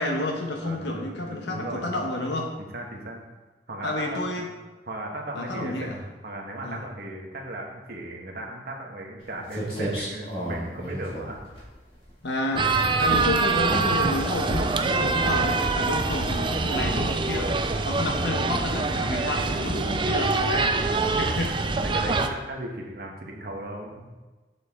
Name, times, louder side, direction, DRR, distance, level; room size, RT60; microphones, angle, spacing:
voice 1, 0.0-2.5 3.8-4.5 5.3-6.0 6.6-6.8 12.2-21.6, left 2 dB, 80° left, 2 dB, 1.2 m, -30 dB
voice 2, 0.6-2.0 2.6-3.2 3.7-4.4 4.9-11.4 21.0-23.9, right 1 dB, 60° right, 0 dB, 1.3 m, -37 dB
sound 1, 9.2-9.3 9.5-12.1 12.5-12.8 13.1-14.1 14.5-14.8 15.2-15.6 16.0-16.4 16.7-17.0 17.4-17.7, equal, 35° left, 2.1 m, -32 dB
sound 2, 12.6-22.3, right 3 dB, 30° right, 0.4 m, -25 dB
6.8 x 6.7 x 3.7 m, 1.2 s
head